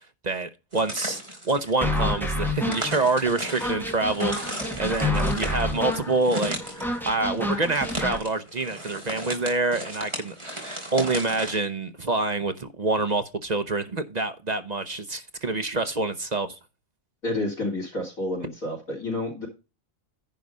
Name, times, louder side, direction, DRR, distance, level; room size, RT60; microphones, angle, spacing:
voice 1, 0.2-6.6 6.8-16.6, right 3 dB, 40° right, 0.8 m, -27 dB
sound 1, 0.7-11.6, equal, 20° right, 3.4 m, -36 dB
sound 2, 1.8-8.2, left 1 dB, ahead, 1.5 m, -29 dB
voice 2, 17.2-19.5, left 2 dB, 80° left, 3.8 m, -29 dB
10.5 x 4.8 x 5.4 m
omnidirectional pair, 1.4 m